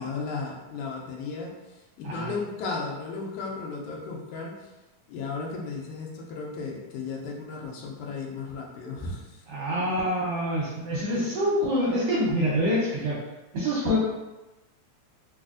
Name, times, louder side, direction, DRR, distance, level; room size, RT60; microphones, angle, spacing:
voice 1, 0.0-1.5 2.0-4.5 5.1-9.3 9.8-9.9 11.2-11.3, left 4 dB, 85° left, -1 dB, 2.0 m, -34 dB
voice 2, 9.5-13.2 13.5-14.0, equal, 75° right, -6 dB, 1.4 m, -26 dB
4.8 x 2.4 x 2.4 m, 1.1 s
omnidirectional pair, 3.4 m